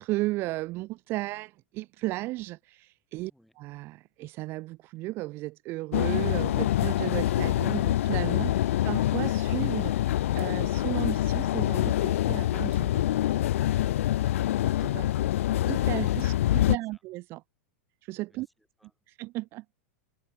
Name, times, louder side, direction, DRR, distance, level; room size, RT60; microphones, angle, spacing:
voice 1, 0.0-3.3 3.6-8.5 8.8-13.1 13.8-13.9 14.8-15.1 15.7-17.4 18.0-18.5 19.1-19.6, right 19 dB, 35° right, 0.4 m, -34 dB
sound 1, 5.9-16.8, left 13 dB, 85° left, 0.4 m, -25 dB
voice 2, 16.6-17.0 18.3-19.1, equal, ahead, 6.6 m, -65 dB
supercardioid pair, 150°, 7 cm